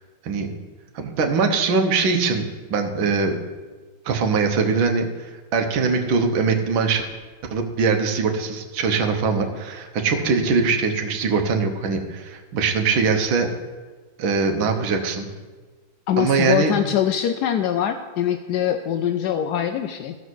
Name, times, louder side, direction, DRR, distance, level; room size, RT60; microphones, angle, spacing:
voice 1, 1.0-3.4 4.1-7.1 7.5-13.5 14.2-15.3 16.2-16.7, right 4 dB, 70° right, 4 dB, 1.8 m, -22 dB
voice 2, 16.1-20.2, left 10 dB, 80° left, 7 dB, 0.9 m, -23 dB
14.0 x 4.9 x 6.3 m, 1.3 s
omnidirectional pair, 2.3 m